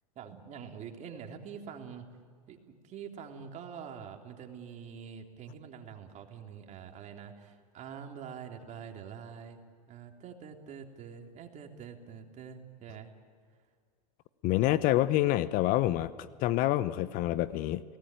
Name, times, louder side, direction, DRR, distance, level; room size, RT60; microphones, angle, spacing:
voice 1, 0.2-2.1 2.5-9.6 9.9-13.1, right 7 dB, 40° right, 3 dB, 3.5 m, -45 dB
voice 2, 14.4-17.8, left 15 dB, 45° left, 15 dB, 0.9 m, -27 dB
30.0 x 18.5 x 9.2 m, 2.1 s
hypercardioid pair, 105°, 19 cm